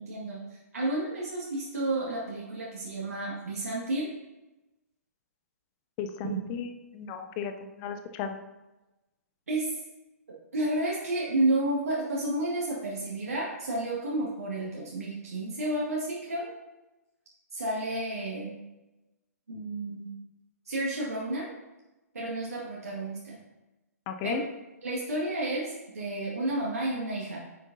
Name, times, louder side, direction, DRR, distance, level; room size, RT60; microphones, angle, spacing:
voice 1, 0.0-4.1 6.2-6.4 9.5-9.7 10.5-16.5 17.5-18.5 19.5-20.1 20.7-21.5 22.1-23.4 24.2-24.4 24.8-27.4, right 1 dB, 65° right, -5 dB, 1.9 m, -31 dB
voice 2, 6.0-7.5 7.8-8.4 24.1-24.4, left 7 dB, 25° left, 8 dB, 0.7 m, -34 dB
9.2 x 7.3 x 2.7 m, 1.1 s
figure-of-eight pair, 125°, 9 cm